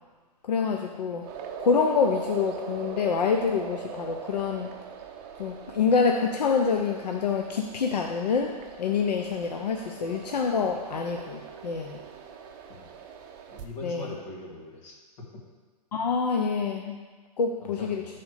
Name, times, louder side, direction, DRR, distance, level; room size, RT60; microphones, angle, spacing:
voice 1, 0.4-1.2 1.6-4.7 5.4-12.0 13.8-14.1 15.9-17.0 17.4-18.0, left 5 dB, 85° left, 2 dB, 0.7 m, -26 dB
sound 1, 1.2-13.6, right 7 dB, 30° right, 0.6 m, -41 dB
voice 2, 13.5-15.0 17.6-18.1, left 2 dB, 55° left, -2 dB, 1.9 m, -41 dB
6.1 x 4.3 x 6.5 m, 1.3 s
hypercardioid pair, 145°, 20 cm